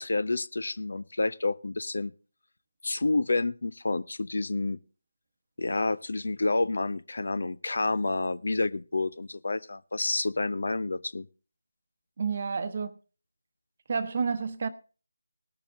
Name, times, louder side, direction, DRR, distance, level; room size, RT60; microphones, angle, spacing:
voice 1, 0.0-2.1 2.8-4.8 5.6-11.3, left 2 dB, 60° left, 0.6 m, -29 dB
voice 2, 12.2-13.0 13.9-14.7, right 5 dB, 40° right, 0.9 m, -30 dB
19.5 x 6.9 x 3.6 m
figure-of-eight pair, 160°, 0 cm